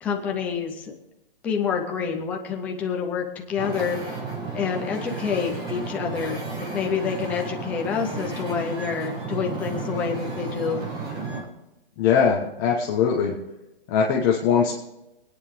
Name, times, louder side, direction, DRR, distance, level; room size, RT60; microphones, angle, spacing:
voice 1, 0.0-0.9 1.4-4.0 4.5-6.4 6.7-10.8, left 6 dB, 5° left, 2 dB, 0.5 m, -27 dB
Wind / Ocean, 3.6-11.5, right 4 dB, 10° right, 1.3 m, -33 dB
voice 2, 12.0-13.3 13.9-14.7, left 7 dB, 20° left, -1 dB, 1.0 m, -21 dB
25.0 x 9.7 x 3.5 m, 0.97 s
hypercardioid pair, 165°, 30 cm